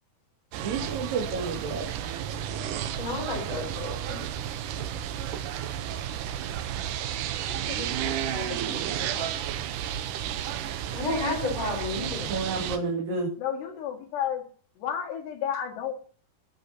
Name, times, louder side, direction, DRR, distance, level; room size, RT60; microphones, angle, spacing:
sound 1, 0.5-12.8, right 10 dB, 85° right, 1.8 m, -32 dB
voice 1, 0.6-1.9 12.3-13.3, right 4 dB, 60° right, -2 dB, 3.9 m, -30 dB
voice 2, 3.0-4.2 10.9-12.3, left 3 dB, 40° left, -1 dB, 5.8 m, -31 dB
voice 3, 7.5-9.5 13.4-14.4 14.8-15.9, left 9 dB, 80° left, 1 dB, 4.2 m, -34 dB
20.0 x 9.4 x 2.8 m, 0.43 s
omnidirectional pair, 4.8 m